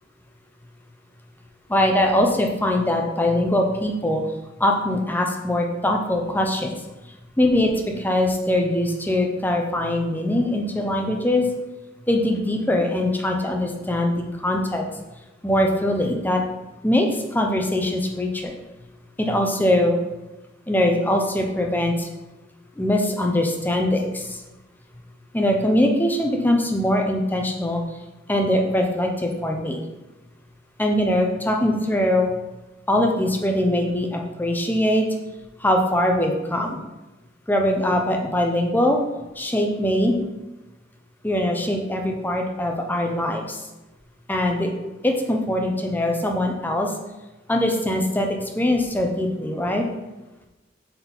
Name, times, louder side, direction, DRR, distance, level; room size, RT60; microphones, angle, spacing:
voice 1, 1.7-4.2 4.6-6.7 7.4-11.5 12.1-14.2 14.4-14.8 15.4-16.4 16.8-18.5 19.2-20.0 20.7-22.1 22.8-24.4 25.3-27.8 28.3-29.8 30.8-32.3 32.9-35.1 35.6-36.8 37.5-39.0 39.4-40.2 41.2-43.6 44.3-44.7 45.0-46.9 47.5-49.8, left 1 dB, 10° left, 2 dB, 0.7 m, -22 dB
7.0 x 4.3 x 4.4 m, 1.1 s
head